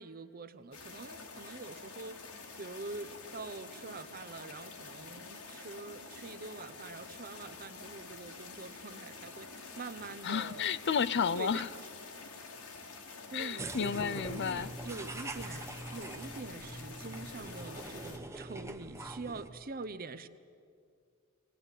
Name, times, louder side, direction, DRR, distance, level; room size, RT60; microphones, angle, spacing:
voice 1, 0.0-2.2 2.6-10.7 11.3-11.9 12.3-12.4 13.3-20.3, right 3 dB, 40° right, 12 dB, 0.8 m, -45 dB
sound 1, 0.7-18.2, left 4 dB, 80° left, 2.4 m, -48 dB
voice 2, 10.2-11.7 13.3-14.7, left 6 dB, 50° left, 16 dB, 0.5 m, -32 dB
sound 2, 13.6-19.5, right 2 dB, 15° right, 0.8 m, -43 dB
20.5 x 18.5 x 8.3 m, 2.3 s
head